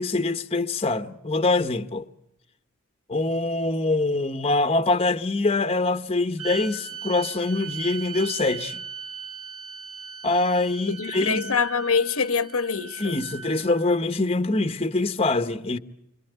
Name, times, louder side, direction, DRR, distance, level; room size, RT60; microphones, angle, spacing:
voice 1, 0.0-2.1 3.1-8.8 10.2-11.6 13.0-15.8, left 2 dB, 25° left, 1.0 m, -24 dB
sound 1, 6.4-13.9, right 6 dB, 85° right, 3.5 m, -38 dB
voice 2, 10.9-13.1, left 5 dB, 70° left, 1.1 m, -25 dB
29.0 x 26.0 x 8.0 m
head